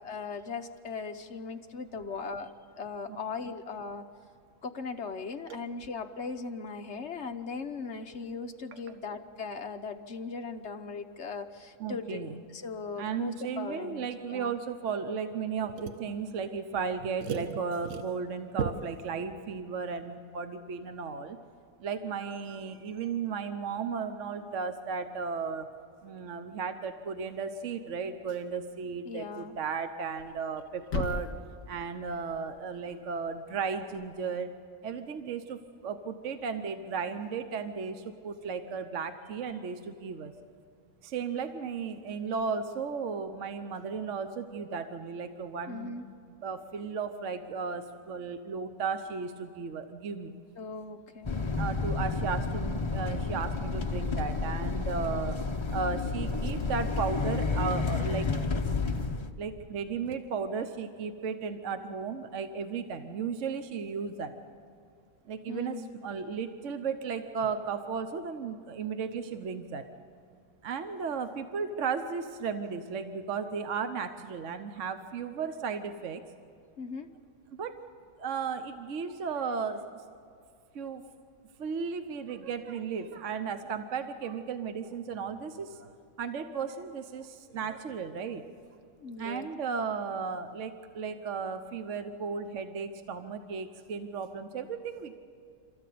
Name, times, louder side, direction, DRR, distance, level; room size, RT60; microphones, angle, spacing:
voice 1, 0.0-2.5 2.8-4.0 4.6-14.5 29.0-29.5 45.7-46.0 50.5-51.3 65.5-65.9 76.8-77.1 89.0-89.5, left 4 dB, 50° left, 6 dB, 1.1 m, -39 dB
voice 2, 11.8-12.4 13.0-21.4 21.8-25.7 26.0-31.3 31.7-34.6 34.8-40.3 41.0-46.0 46.4-50.3 51.6-55.4 55.7-58.3 59.4-64.3 65.3-65.8 66.0-69.8 70.6-76.2 77.5-77.7 78.2-79.9 80.7-81.0 81.6-88.4 89.2-95.2, right 5 dB, 55° right, 8 dB, 1.1 m, -35 dB
Thump thud, 30.0-34.1, left 3 dB, 70° left, 2.4 m, -40 dB
sound 1, 51.2-59.3, left 4 dB, 30° left, 0.5 m, -31 dB
27.0 x 14.0 x 8.5 m, 2.3 s
omnidirectional pair, 1.7 m